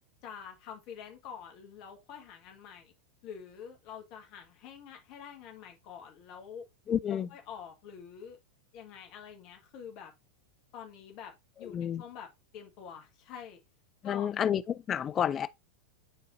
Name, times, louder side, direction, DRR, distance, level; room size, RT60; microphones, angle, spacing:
voice 1, 0.2-2.9 3.2-6.6 7.1-8.4 8.7-10.1 10.7-11.3 11.6-12.3 12.5-13.6 14.0-14.3, left 7 dB, 40° left, 1.6 m, -46 dB
voice 2, 6.9-7.3 11.6-12.0 14.0-15.5, left 9 dB, 25° left, 0.4 m, -30 dB
10.0 x 4.0 x 2.6 m
figure-of-eight pair, 90°, 0 cm